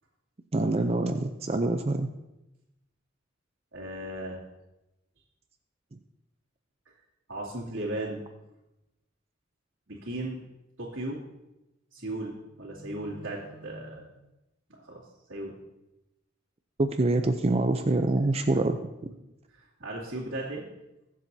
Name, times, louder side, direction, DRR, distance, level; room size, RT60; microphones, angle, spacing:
voice 1, 0.5-2.1 16.8-18.8, right 2 dB, 30° right, 7 dB, 0.5 m, -25 dB
voice 2, 3.7-4.4 7.3-8.2 9.9-10.4 10.8-11.2 11.9-14.1 14.8-15.0 15.3-15.5 17.9-18.0 19.5-20.6, right 1 dB, 75° right, -9 dB, 2.5 m, -36 dB
22.5 x 7.5 x 2.7 m, 0.95 s
head